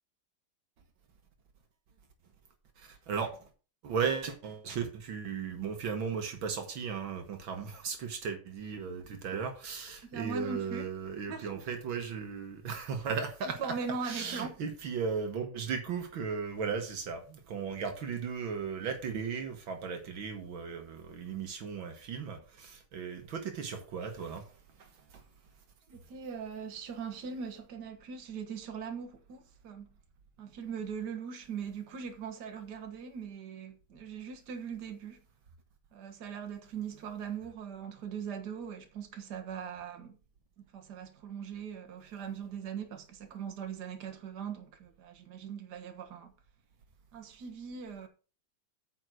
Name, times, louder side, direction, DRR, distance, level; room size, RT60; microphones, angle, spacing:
voice 1, 2.8-3.3 3.8-13.8 14.0-24.5 24.8-25.2, right 6 dB, 75° right, 2.1 m, -36 dB
voice 2, 10.0-10.9 11.3-11.7 13.6-14.5 25.9-29.9 30.4-35.2 35.9-40.2 40.7-46.3 47.1-48.1, right 6 dB, 55° right, 1.9 m, -40 dB
9.1 x 5.3 x 6.2 m
omnidirectional pair, 2.2 m